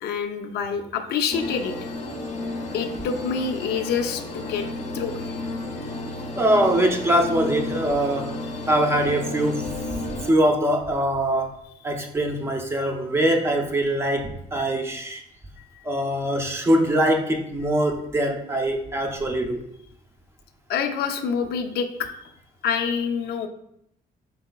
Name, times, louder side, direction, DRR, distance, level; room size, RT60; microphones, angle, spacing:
voice 1, 0.0-2.0 2.7-4.7 4.9-5.3 5.8-5.9 15.6-15.9 20.7-22.1 22.6-23.5, left 6 dB, 85° left, 6 dB, 0.5 m, -27 dB
sound 1, 1.3-10.3, left 2 dB, 45° left, 0.6 m, -32 dB
voice 2, 6.4-8.3 8.7-9.7 10.3-11.5 11.8-15.2 15.8-19.6, right 1 dB, 15° right, 3 dB, 0.4 m, -22 dB
4.6 x 4.0 x 2.2 m, 0.75 s
cardioid pair, 160°, 17 cm